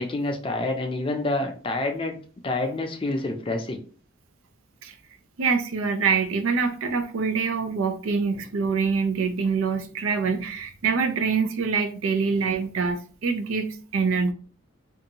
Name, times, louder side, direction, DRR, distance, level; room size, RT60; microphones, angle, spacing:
voice 1, 0.0-2.1 2.4-3.8, left 2 dB, 25° left, 0.4 m, -27 dB
voice 2, 5.4-14.3, right 5 dB, 85° right, 0.4 m, -25 dB
2.6 x 2.3 x 2.8 m
head